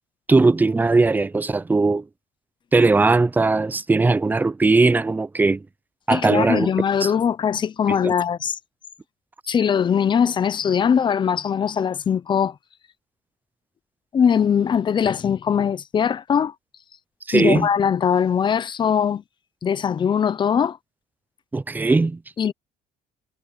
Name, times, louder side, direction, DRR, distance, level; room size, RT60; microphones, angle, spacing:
voice 1, 0.3-2.0 2.7-5.6 6.1-6.7 7.0-7.1 7.9-8.1 17.3-17.7 21.5-22.2, right 3 dB, 10° right, 0.5 m, -19 dB
voice 2, 6.1-8.6 9.5-12.6 14.1-16.5 17.3-19.2 19.6-20.8 22.4-22.5, left 7 dB, 30° left, 0.7 m, -21 dB
cardioid pair, 145°, 17 cm